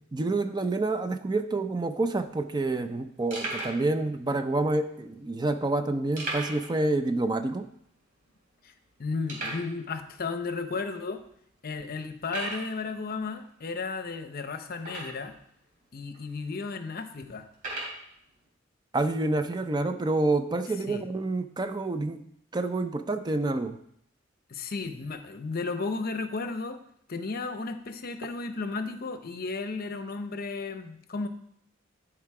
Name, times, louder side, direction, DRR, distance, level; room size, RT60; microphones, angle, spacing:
voice 1, 0.1-7.7 18.9-22.3 22.5-23.8, right 2 dB, 20° right, 9 dB, 0.4 m, -28 dB
sound 1, 2.3-2.4 2.8-2.9 3.3-3.8 4.6-4.7 6.2-6.7 7.0-7.1 7.6-7.7 8.3-8.4 9.3-9.7 10.5-10.6 11.2-11.3 12.2-12.7 14.8-15.4 16.1-16.2 17.5-18.0, right 2 dB, 45° right, 3.0 m, -35 dB
voice 2, 9.0-11.2 11.6-15.3 15.9-17.5 20.9-21.0 24.5-26.8 27.1-31.3, left 4 dB, 50° left, 9 dB, 0.7 m, -34 dB
11.0 x 4.8 x 4.7 m, 0.70 s
head